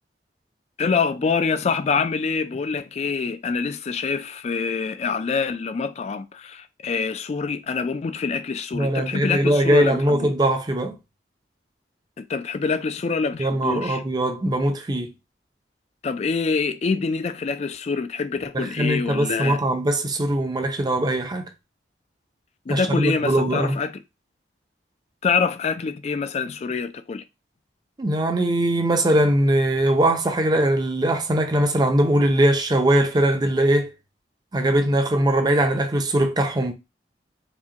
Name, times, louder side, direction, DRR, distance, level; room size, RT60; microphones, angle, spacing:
voice 1, 0.8-10.3 12.2-14.0 16.0-19.6 22.7-24.0 25.2-27.2, left 5 dB, 35° left, 0.3 m, -25 dB
voice 2, 8.7-11.0 13.4-15.1 18.5-21.5 22.7-23.8 28.0-33.9 34.5-36.7, right 1 dB, 20° right, 0.5 m, -21 dB
4.8 x 2.2 x 2.8 m
head